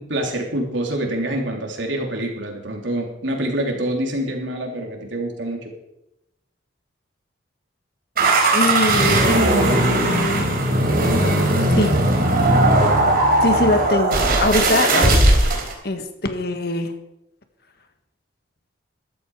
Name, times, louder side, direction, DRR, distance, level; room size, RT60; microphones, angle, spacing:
voice 1, 0.1-5.7, right 1 dB, 85° right, 2 dB, 3.3 m, -26 dB
sound 1, 8.2-15.7, right 2 dB, 50° right, 3.5 m, -17 dB
voice 2, 8.5-10.5 11.2-11.5 11.7-11.9 13.4-15.2 15.8-16.9, left 2 dB, 55° left, 7 dB, 1.6 m, -22 dB
14.5 x 12.5 x 4.8 m, 0.88 s
head